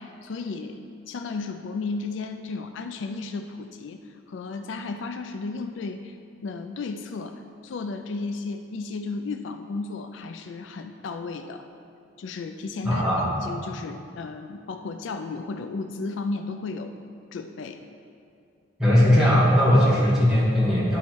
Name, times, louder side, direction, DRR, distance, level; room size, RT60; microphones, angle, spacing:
voice 1, 0.0-6.2 6.4-11.6 12.2-17.0 17.3-17.8, left 3 dB, 70° left, 7 dB, 0.4 m, -34 dB
voice 2, 12.8-13.3 18.8-21.0, equal, 5° right, -9 dB, 2.1 m, -19 dB
11.5 x 4.2 x 4.6 m, 2.4 s
head